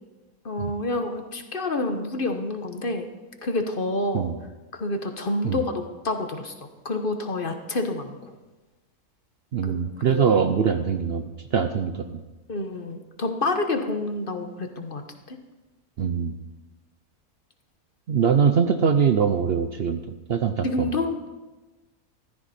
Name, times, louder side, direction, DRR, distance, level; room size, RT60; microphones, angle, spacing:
voice 1, 0.4-3.1 3.4-4.3 4.7-6.5 6.8-8.2 9.6-9.7 10.1-10.3 12.5-15.0 15.3-15.4 20.6-21.3, left 2 dB, 40° left, 6 dB, 1.2 m, -28 dB
voice 2, 9.5-11.2 11.5-12.2 16.0-16.3 18.1-20.0 20.3-21.0, right 7 dB, 55° right, 7 dB, 0.8 m, -22 dB
14.5 x 13.0 x 4.3 m, 1.2 s
omnidirectional pair, 1.5 m